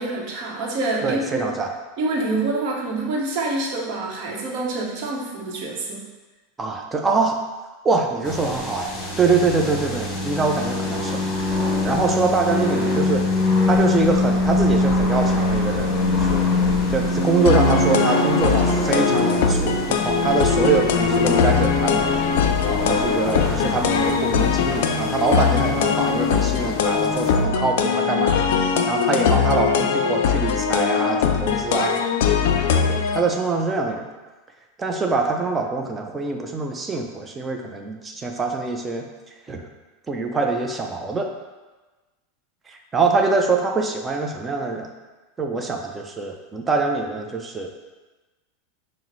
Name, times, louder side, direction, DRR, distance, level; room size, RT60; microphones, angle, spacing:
voice 1, 0.0-1.5 2.0-6.0, right 2 dB, 55° right, -2 dB, 0.9 m, -26 dB
voice 2, 1.0-1.7 6.6-7.4 7.8-13.3 13.7-16.5 16.9-22.3 22.6-28.4 28.9-32.4 32.9-34.1 34.8-39.1 39.5-39.6 40.1-41.3 42.7-44.9 45.4-47.7, right 4 dB, 15° right, 3 dB, 0.4 m, -24 dB
sound 1, 8.2-27.3, left 2 dB, 30° left, 1.2 m, -24 dB
sound 2, 17.5-33.2, left 7 dB, 70° left, 0.3 m, -21 dB
5.7 x 2.0 x 3.0 m, 1.2 s
supercardioid pair, 125°, 0 cm